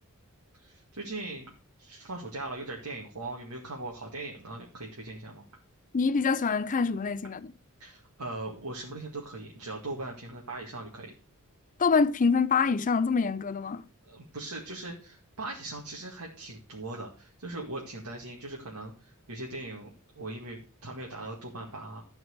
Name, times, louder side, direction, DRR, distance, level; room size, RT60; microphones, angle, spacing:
voice 1, 0.6-1.5 1.8-5.5 7.8-11.1 14.1-22.0, right 2 dB, 85° right, 2.0 m, -40 dB
voice 2, 5.9-7.5 11.8-13.8, left 5 dB, 35° left, 0.5 m, -25 dB
12.5 x 4.7 x 6.4 m
head